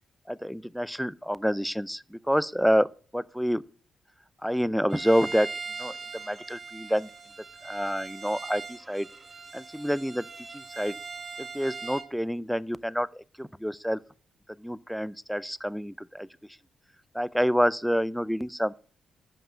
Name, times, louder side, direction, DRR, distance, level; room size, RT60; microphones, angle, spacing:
voice 1, 0.3-2.9 3.1-3.6 4.4-5.5 5.8-5.9 6.3-7.1 7.6-9.1 9.5-10.2 10.5-11.0 11.4-14.0 14.6-16.3 17.1-18.7, equal, ahead, 0.4 m, -27 dB
Bowed string instrument, 4.9-12.1, right 4 dB, 35° right, 1.5 m, -40 dB
7.6 x 5.5 x 7.4 m
supercardioid pair, 60°, 0 cm